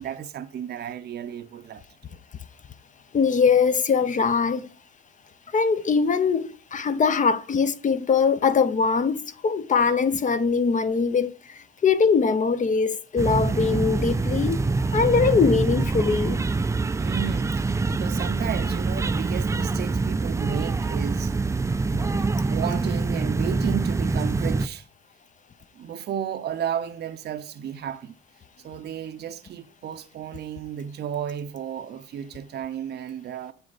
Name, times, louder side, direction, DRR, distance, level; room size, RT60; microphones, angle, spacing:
voice 1, 0.0-2.2 17.0-21.4 21.9-22.2 22.5-24.9 25.7-28.1 28.6-33.5, right 9 dB, 55° right, 0.6 m, -33 dB
voice 2, 3.1-4.7 5.5-14.6 14.9-16.4, left 5 dB, 40° left, 0.6 m, -22 dB
sound 1, 13.2-24.7, right 3 dB, 15° right, 0.3 m, -25 dB
7.9 x 4.5 x 4.0 m
cardioid pair, 90°, 20 cm